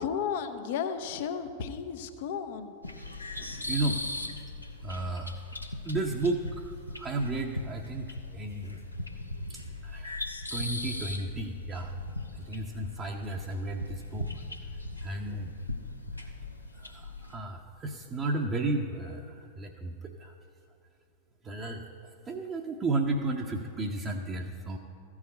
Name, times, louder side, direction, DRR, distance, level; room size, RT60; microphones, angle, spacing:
voice 1, 0.0-2.7, left 7 dB, 50° left, 9 dB, 0.6 m, -33 dB
sound 1, 2.8-17.4, left 2 dB, 85° left, 0.8 m, -39 dB
voice 2, 3.3-4.0 4.8-5.4 5.8-8.8 9.5-10.2 10.5-11.9 12.3-14.3 15.0-15.5 16.8-20.3 21.4-21.9 22.3-24.8, right 2 dB, 25° right, 0 dB, 0.7 m, -33 dB
14.0 x 4.9 x 8.4 m, 2.6 s
figure-of-eight pair, 90°, 0 cm